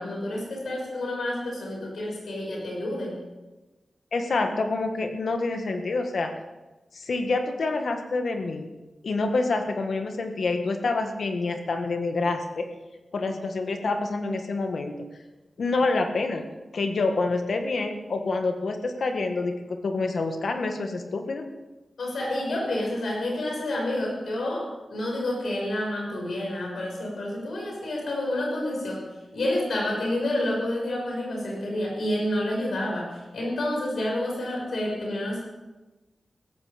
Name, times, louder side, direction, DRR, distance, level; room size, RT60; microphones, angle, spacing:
voice 1, 0.0-3.2 22.0-35.4, left 1 dB, 85° left, -2 dB, 6.2 m, -29 dB
voice 2, 4.1-6.3 6.9-8.7 9.0-12.7 13.1-15.0 15.6-16.5 16.7-21.5, left 3 dB, 65° left, 5 dB, 1.7 m, -27 dB
17.0 x 15.0 x 5.2 m, 1.1 s
wide cardioid pair, 175°, 0 cm